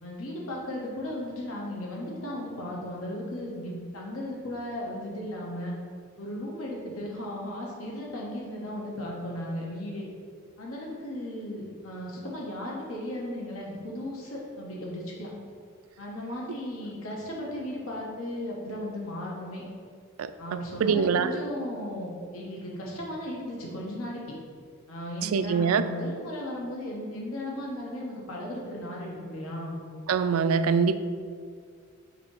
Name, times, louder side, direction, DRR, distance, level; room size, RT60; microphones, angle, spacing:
voice 1, 0.0-5.7 6.2-10.1 10.6-15.3 16.0-19.6 20.4-24.4 24.9-29.8, left 1 dB, 85° left, -3 dB, 1.1 m, -36 dB
voice 2, 20.2-21.3 25.3-25.8 30.1-31.0, right 6 dB, 90° right, 11 dB, 0.3 m, -24 dB
7.0 x 2.8 x 4.8 m, 2.1 s
head